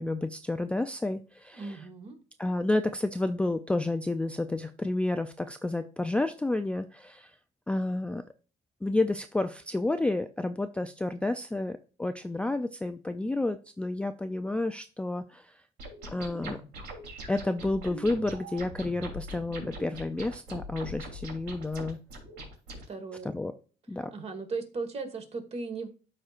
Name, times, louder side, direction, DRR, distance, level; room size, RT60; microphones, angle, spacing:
voice 1, 0.0-1.9 2.4-7.3 7.7-8.2 8.8-15.6 16.1-16.6 17.3-22.0 23.2-23.5 23.9-24.1, left 2 dB, 5° left, 8 dB, 0.3 m, -30 dB
voice 2, 1.5-2.2 22.9-23.3 24.1-25.9, right 4 dB, 40° right, 6 dB, 1.6 m, -37 dB
sound 1, 15.8-22.8, right 1 dB, 85° right, 3.1 m, -42 dB
12.5 x 4.3 x 2.5 m, 0.36 s
cardioid pair, 110°, 17 cm